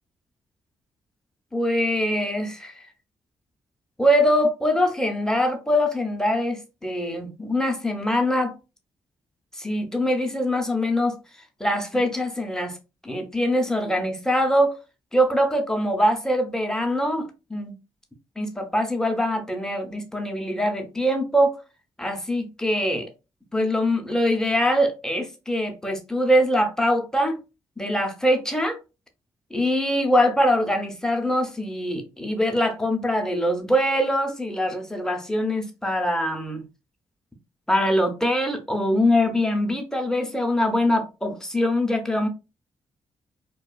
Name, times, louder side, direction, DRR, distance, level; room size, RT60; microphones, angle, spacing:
voice 1, 1.5-2.7 4.0-8.5 9.6-11.2 11.6-12.8 13.0-14.7 15.1-17.7 18.4-21.6 22.0-23.1 23.5-27.4 27.8-28.8 29.5-36.6 37.7-42.3, equal, 5° left, 0.7 m, -23 dB
2.4 x 2.2 x 2.2 m
supercardioid pair, 60°, 12 cm